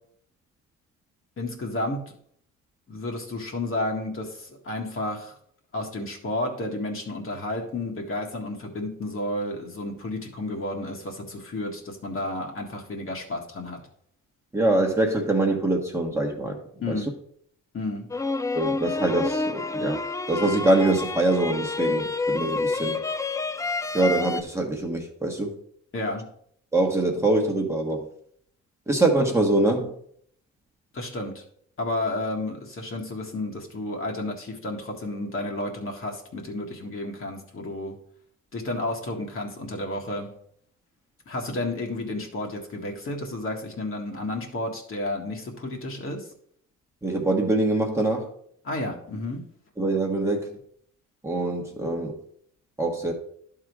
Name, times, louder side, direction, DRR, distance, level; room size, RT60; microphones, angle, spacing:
voice 1, 1.4-2.0 2.9-5.4 5.7-13.8 16.8-17.1 17.7-18.1 25.9-26.2 30.9-31.4 31.8-37.9 38.5-40.3 41.3-46.3 48.6-49.4, left 1 dB, 45° left, 1 dB, 1.8 m, -31 dB
voice 2, 14.5-16.6 16.9-17.0 18.5-20.0 20.3-23.0 23.9-25.6 26.7-28.0 28.9-29.9 47.0-48.3 49.8-50.5 51.2-52.1 52.8-53.1, right 2 dB, 10° right, 0 dB, 1.4 m, -24 dB
sound 1, 18.1-24.4, left 3 dB, 10° left, 0.4 m, -28 dB
11.0 x 3.8 x 4.7 m, 0.65 s
cardioid pair, 90°, 30 cm